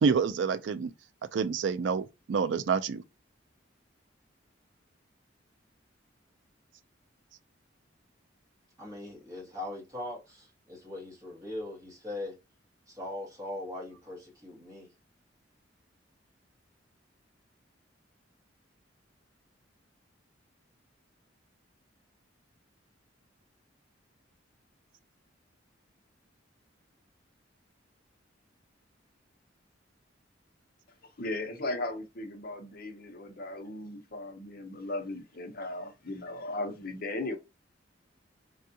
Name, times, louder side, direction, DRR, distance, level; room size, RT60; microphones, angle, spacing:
voice 1, 0.0-0.9 1.3-3.0, right 5 dB, 70° right, 0.4 m, -28 dB
voice 2, 8.8-12.4 12.9-14.9, left 1 dB, 20° right, 1.4 m, -40 dB
voice 3, 31.2-37.4, left 2 dB, 50° left, 0.7 m, -37 dB
3.5 x 2.3 x 2.7 m
head